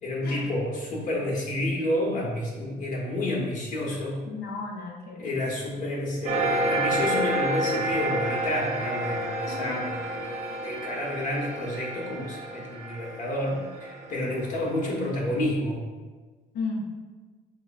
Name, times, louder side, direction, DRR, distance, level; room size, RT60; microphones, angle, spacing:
voice 1, 0.0-4.2 5.2-15.8, left 1 dB, 50° left, -3 dB, 1.1 m, -30 dB
voice 2, 4.3-5.3 9.4-9.9 16.5-16.9, left 3 dB, 65° left, 1 dB, 0.8 m, -34 dB
sound 1, 6.2-15.3, right 1 dB, 45° right, 0.7 m, -30 dB
6.5 x 2.2 x 2.4 m, 1.3 s
cardioid pair, 110°, 17 cm